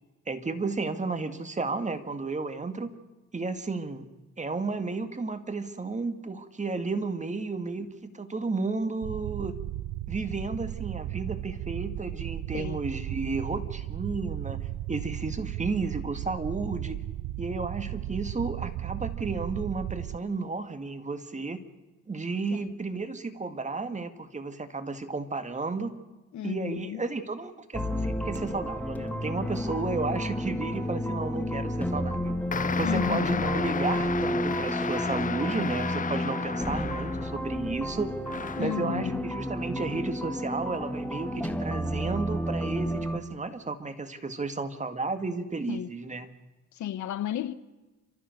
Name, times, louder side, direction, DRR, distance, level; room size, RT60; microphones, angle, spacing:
voice 1, 0.3-2.9 3.3-4.1 4.4-9.6 10.1-17.0 17.4-21.6 22.1-25.9 26.4-32.4 32.8-38.2 38.6-46.3, right 3 dB, 25° right, 1.9 m, -33 dB
sound 1, 9.0-20.2, right 14 dB, 80° right, 0.7 m, -35 dB
voice 2, 26.3-27.0 32.8-33.5 38.5-39.3 45.7-45.9 46.7-47.5, left 11 dB, 70° left, 1.2 m, -33 dB
sound 2, 27.7-43.2, equal, 5° left, 1.8 m, -31 dB
sound 3, 32.5-37.6 38.3-38.8, left 6 dB, 25° left, 0.6 m, -33 dB
30.0 x 13.5 x 6.6 m
cardioid pair, 90°, 30 cm